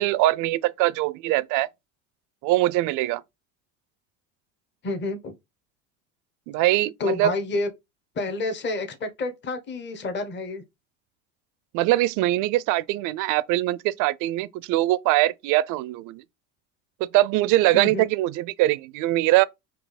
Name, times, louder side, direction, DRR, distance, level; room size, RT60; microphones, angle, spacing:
voice 1, 0.0-1.7 2.4-3.2 6.5-7.3 11.7-16.2 17.0-19.4, right 16 dB, 55° right, 0.5 m, -22 dB
voice 2, 4.8-5.3 7.0-7.7 8.1-10.6 17.7-18.1, left 2 dB, 30° left, 1.0 m, -29 dB
3.6 x 2.9 x 4.0 m
hypercardioid pair, 85°, 38 cm